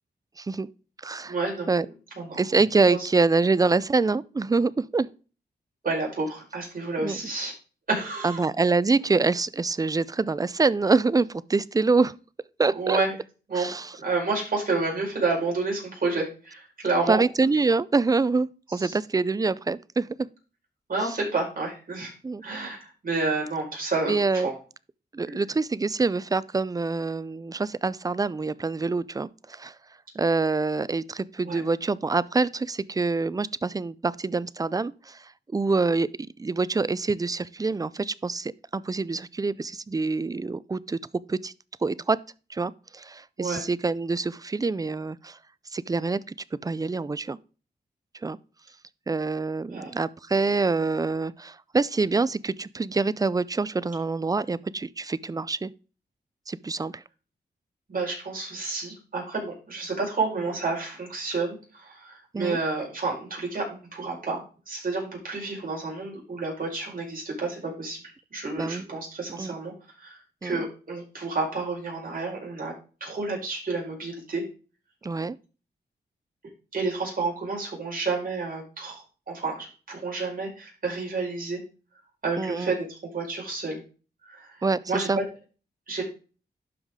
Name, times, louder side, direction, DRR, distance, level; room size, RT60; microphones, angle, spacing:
voice 1, 0.4-0.7 1.0-1.3 1.7-1.9 2.4-5.1 7.0-7.2 8.2-12.1 12.6-13.0 13.6-13.9 17.1-20.1 22.2-22.4 24.1-24.5 25.1-29.7 30.2-36.1 36.4-41.0 41.3-41.5 41.8-42.2 42.5-45.4 45.7-46.3 46.6-47.4 48.2-48.4 49.1-55.7 56.5-57.0 62.3-62.6 68.6-68.9 69.4-69.5 70.4-70.7 75.0-75.4 82.4-82.7 84.6-84.8 85.1-85.2, right 3 dB, 20° right, 0.4 m, -25 dB
voice 2, 1.2-1.7 2.2-2.4 2.9-3.1 5.8-7.5 7.9-8.4 12.7-13.1 13.5-17.2 18.7-19.0 20.9-22.1 22.4-24.5 25.3-25.4 31.4-31.6 43.4-43.6 49.7-49.9 57.9-68.0 68.3-69.7 70.0-72.7 73.0-74.4 76.7-81.6 82.2-83.8 84.2-85.2 85.9-86.0, right 3 dB, 55° right, 4.9 m, -30 dB
12.0 x 5.0 x 3.6 m
cardioid pair, 80°, 18 cm